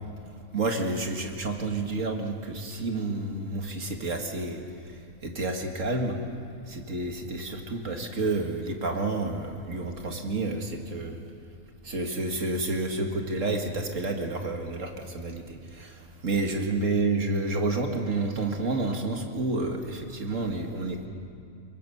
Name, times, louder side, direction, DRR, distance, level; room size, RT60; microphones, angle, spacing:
voice 1, 0.5-4.6 5.2-6.2 6.7-11.2 11.8-21.1, right 2 dB, 60° right, 3 dB, 2.2 m, -30 dB
23.5 x 22.0 x 6.9 m, 2.5 s
omnidirectional pair, 1.5 m